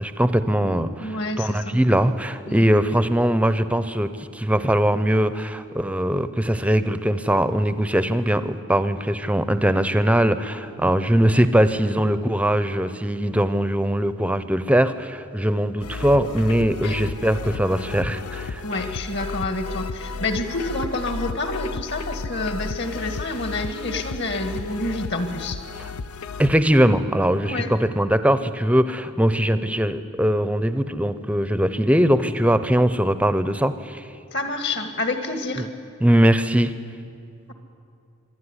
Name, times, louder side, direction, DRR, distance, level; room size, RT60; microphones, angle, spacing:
voice 1, 0.0-18.6 26.4-34.0 35.6-35.7 36.0-36.7, equal, 5° right, 12 dB, 0.6 m, -21 dB
voice 2, 1.0-1.8 2.5-2.6 16.8-17.0 18.6-25.6 27.5-27.7 34.3-35.7, left 2 dB, 50° left, 7 dB, 1.9 m, -28 dB
sound 1, 15.8-26.6, left 4 dB, 90° left, 0.6 m, -33 dB
25.5 x 12.0 x 9.8 m, 2.5 s
head